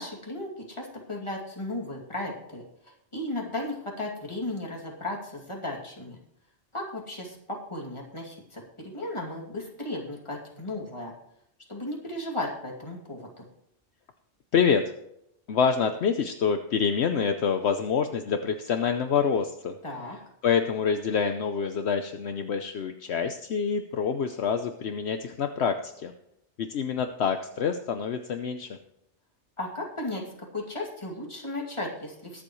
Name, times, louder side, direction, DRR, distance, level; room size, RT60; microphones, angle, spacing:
voice 1, 0.0-6.2 6.7-11.1 11.7-13.5 19.8-20.2 29.6-32.4, left 1 dB, 25° left, -2 dB, 2.6 m, -35 dB
voice 2, 14.5-14.8 15.5-19.8 20.4-26.1 26.6-28.8, left 6 dB, 65° left, 7 dB, 1.0 m, -26 dB
22.0 x 7.7 x 3.1 m, 0.78 s
omnidirectional pair, 1.2 m